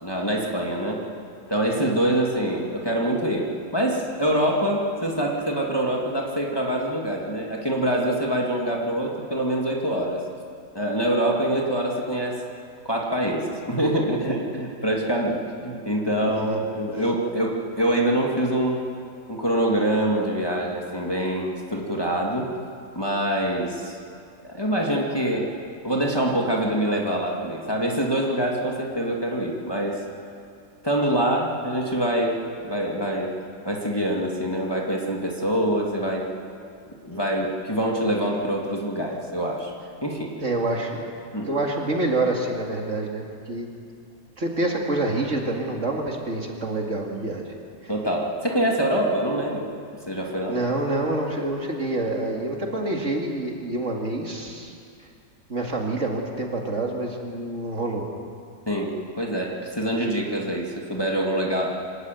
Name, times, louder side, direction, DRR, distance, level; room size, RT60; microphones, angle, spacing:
voice 1, 0.0-1.0 1.5-3.5 3.7-10.2 10.7-12.4 12.8-18.8 19.3-22.5 22.9-24.0 24.4-25.5 25.8-30.0 30.8-32.4 32.7-33.3 33.6-36.2 37.0-39.7 40.0-40.3 41.3-41.5 47.9-49.7 50.1-50.6 58.7-61.8, right 1 dB, 15° left, -2 dB, 2.3 m, -25 dB
voice 2, 40.4-41.1 41.5-43.7 44.4-47.4 47.8-47.9 50.5-54.7 55.5-58.1, right 2 dB, 50° right, 0 dB, 2.5 m, -27 dB
26.0 x 13.5 x 9.3 m, 2.3 s
omnidirectional pair, 1.7 m